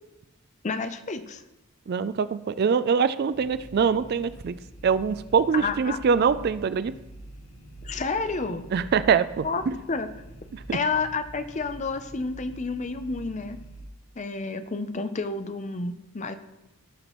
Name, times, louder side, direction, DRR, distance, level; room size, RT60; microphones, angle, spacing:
voice 1, 0.6-1.4 5.5-6.0 7.8-8.7 9.4-9.6 9.9-10.1 10.7-13.6 14.2-16.4, left 4 dB, 35° left, 10 dB, 0.6 m, -30 dB
voice 2, 1.9-4.6 4.8-6.9 8.7-9.7 10.5-10.8, right 6 dB, 45° right, 15 dB, 0.3 m, -24 dB
sound 1, 3.3-13.9, right 1 dB, 85° left, 1.4 m, -45 dB
17.0 x 5.9 x 3.0 m, 0.97 s
head